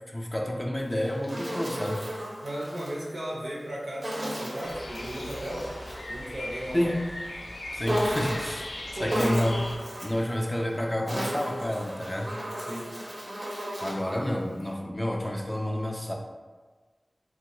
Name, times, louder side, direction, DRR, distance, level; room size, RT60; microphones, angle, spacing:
voice 1, 0.1-2.0 6.7-7.1 7.7-8.7 9.0-9.7 10.0-12.3 13.8-16.1, left 1 dB, 15° left, 0 dB, 0.4 m, -29 dB
Insect, 0.8-3.0 4.0-6.1 7.8-8.7 9.1-10.2 10.9-14.1, equal, 45° right, 0.7 m, -34 dB
voice 2, 2.4-5.7 6.1-6.9 9.0-9.2 12.6-12.9, equal, 90° right, -5 dB, 0.7 m, -35 dB
sound 1, 4.6-9.8, left 1 dB, 85° left, 0.3 m, -39 dB
2.8 x 2.3 x 2.9 m, 1.3 s
wide cardioid pair, 50°, 0 cm